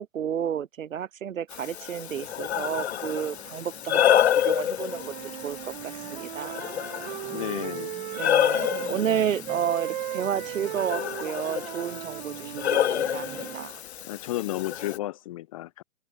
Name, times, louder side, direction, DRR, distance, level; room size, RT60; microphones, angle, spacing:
voice 1, 0.0-6.6 8.1-13.3 13.5-13.8, right 9 dB, 60° right, 5.9 m, -31 dB
Breathing, 1.5-15.0, left 10 dB, 50° left, 0.6 m, -29 dB
sound 1, 2.1-13.6, right 12 dB, 15° right, 2.7 m, -49 dB
sound 2, 4.8-8.9 9.5-13.7, right 13 dB, 35° right, 1.3 m, -37 dB
voice 2, 7.3-7.9 14.0-15.8, left 16 dB, 25° left, 1.0 m, -32 dB
open air
hypercardioid pair, 160°, 44 cm